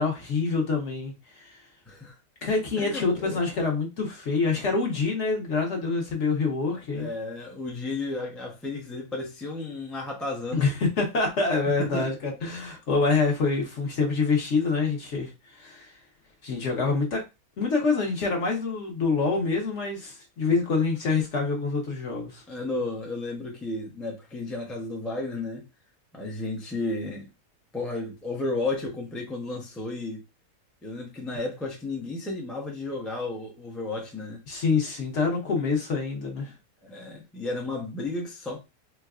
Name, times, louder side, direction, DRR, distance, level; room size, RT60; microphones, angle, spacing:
voice 1, 0.0-1.6 2.4-7.1 10.5-16.0 16.4-17.2 17.6-22.4 34.5-36.5, left 4 dB, 55° left, 1.2 m, -26 dB
voice 2, 2.8-3.4 6.7-10.7 11.8-12.1 22.5-25.7 26.1-27.3 27.7-30.2 30.8-34.4 36.8-38.6, left 2 dB, ahead, 0.4 m, -33 dB
4.4 x 2.2 x 2.4 m
omnidirectional pair, 1.6 m